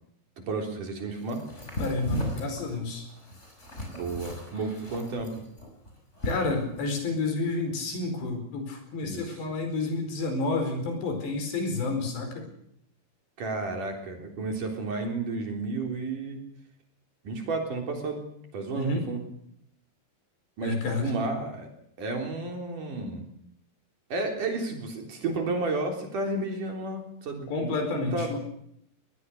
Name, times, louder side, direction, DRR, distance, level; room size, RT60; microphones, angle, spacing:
voice 1, 0.5-1.5 3.9-5.4 9.0-9.3 13.4-16.4 17.2-18.2 18.5-19.2 20.6-21.7 22.0-23.2 24.1-28.4, right 3 dB, 50° right, 3 dB, 4.9 m, -32 dB
sound 1, 1.3-7.1, equal, 15° left, 5.9 m, -36 dB
voice 2, 1.8-3.0 6.2-12.4 18.7-19.0 20.6-21.1 27.5-28.4, left 3 dB, 80° left, 5 dB, 6.9 m, -30 dB
21.5 x 20.0 x 6.7 m, 0.71 s
omnidirectional pair, 4.9 m